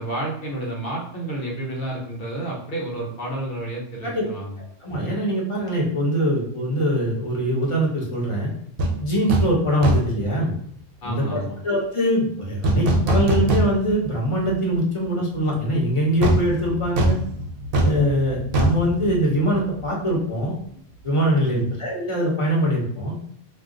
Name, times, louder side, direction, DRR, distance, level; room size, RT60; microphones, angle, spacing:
voice 1, 0.0-4.6 11.0-11.6 21.4-21.7, right 1 dB, 60° left, -2 dB, 1.0 m, -30 dB
voice 2, 4.8-8.5 9.0-10.5 11.0-17.2 17.8-20.5 21.0-23.1, equal, 35° left, -2 dB, 0.8 m, -23 dB
sound 1, 8.8-9.0 9.3-9.6 9.8-10.2 12.6-14.1 14.4-14.5 16.2-19.9 20.1-20.3, right 1 dB, 65° right, 0.8 m, -22 dB
2.4 x 2.3 x 3.7 m, 0.64 s
omnidirectional pair, 1.1 m